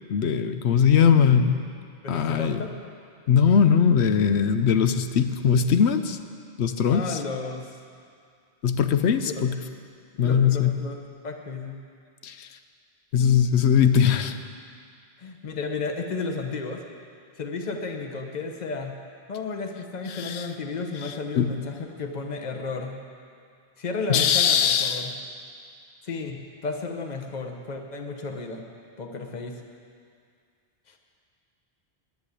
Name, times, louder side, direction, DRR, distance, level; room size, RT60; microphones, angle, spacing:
voice 1, 0.1-1.6 2.1-2.6 3.3-6.2 6.6-7.2 8.6-9.5 10.2-10.7 12.2-12.5 13.1-14.4 20.1-20.5 21.0-21.5 24.1-25.1, left 7 dB, 80° left, 9 dB, 0.9 m, -21 dB
voice 2, 2.0-2.7 6.9-7.7 9.2-9.5 10.2-11.0 11.2-11.8 15.2-16.8 17.4-19.0 19.3-23.0 23.8-25.1 26.0-28.6 29.0-29.6, left 4 dB, 40° left, 4 dB, 1.1 m, -33 dB
10.5 x 10.5 x 8.3 m, 2.2 s
omnidirectional pair, 1.1 m